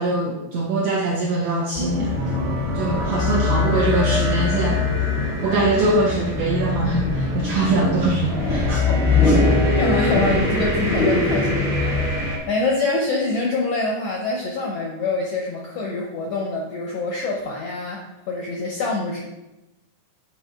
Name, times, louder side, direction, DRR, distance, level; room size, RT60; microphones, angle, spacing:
voice 1, 0.0-2.2 2.7-4.9 5.4-8.8 9.2-9.3, right 2 dB, 75° right, -2 dB, 1.5 m, -22 dB
sound 1, 1.7-12.3, left 2 dB, 60° right, 0.6 m, -28 dB
sound 2, 2.2-12.4, left 3 dB, ahead, 0.6 m, -22 dB
voice 2, 8.6-9.0 9.8-19.2, left 3 dB, 80° left, -1 dB, 1.4 m, -25 dB
8.3 x 4.2 x 3.6 m, 0.97 s
omnidirectional pair, 3.8 m